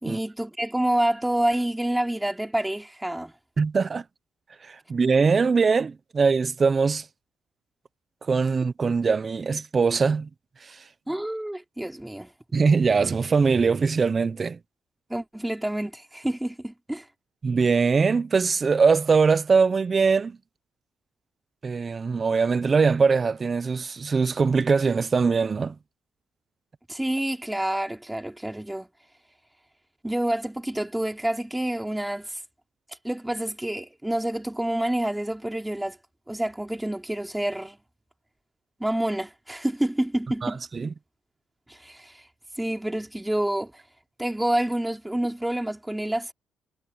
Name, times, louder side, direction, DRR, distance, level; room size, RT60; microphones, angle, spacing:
voice 1, 0.0-3.3 11.1-12.3 15.1-17.1 26.9-28.9 30.0-32.4 33.0-36.0 36.3-37.8 38.8-40.6 41.7-42.2 42.6-43.7 44.2-46.3, right 1 dB, 5° right, 3.4 m, -28 dB
voice 2, 3.6-4.0 4.6-7.1 8.2-10.3 10.6-10.8 12.5-14.6 17.4-20.4 21.6-25.8 40.4-40.9, right 5 dB, 35° right, 0.9 m, -22 dB
cardioid pair, 90°, 0 cm